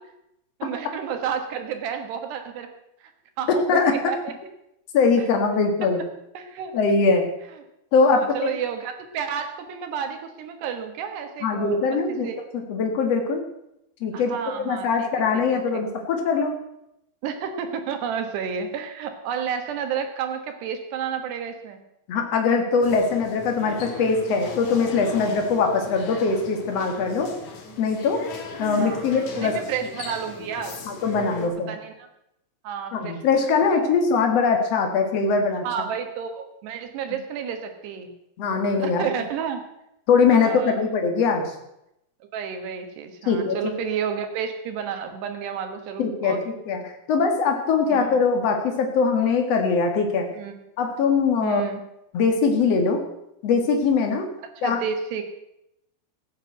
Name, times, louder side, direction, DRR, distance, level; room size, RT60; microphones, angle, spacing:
voice 1, 0.6-2.7 3.0-3.1 3.4-4.3 6.3-6.7 8.2-12.4 14.1-15.1 15.7-15.8 17.2-21.8 28.6-30.8 31.4-32.1 32.6-33.2 35.6-38.1 38.8-39.6 40.3-40.8 42.3-46.4 47.9-48.1 50.3-50.5 51.4-51.8 54.6-55.2, right 7 dB, 65° right, 6 dB, 3.0 m, -31 dB
voice 2, 3.5-3.9 4.9-6.0 6.7-7.2 7.9-8.5 11.4-12.3 12.5-13.4 14.0-14.4 14.6-16.5 22.1-27.3 27.8-28.2 28.6-29.5 30.9-31.7 32.9-35.6 38.4-39.1 40.1-41.5 43.2-43.7 46.0-46.8 47.1-50.3 50.8-51.6 52.1-53.0 53.4-54.3 54.6-54.8, left 5 dB, 70° left, 4 dB, 1.5 m, -22 dB
sound 1, 22.8-31.5, left 4 dB, 50° left, 2.4 m, -38 dB
15.0 x 9.6 x 7.8 m, 0.82 s
omnidirectional pair, 5.8 m